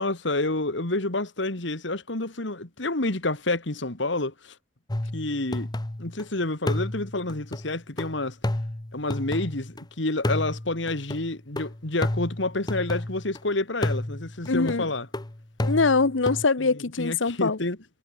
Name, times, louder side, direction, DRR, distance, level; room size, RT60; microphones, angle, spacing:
voice 1, 0.0-4.5 5.1-5.7 6.0-8.4 8.9-15.1 17.0-17.8, left 2 dB, 70° left, 2.3 m, -29 dB
sound 1, 4.9-6.2 6.7-9.8 10.2-13.4 13.8-16.5, left 1 dB, 20° left, 0.9 m, -31 dB
voice 2, 14.5-14.9 15.6-17.6, left 4 dB, 90° left, 1.0 m, -23 dB
head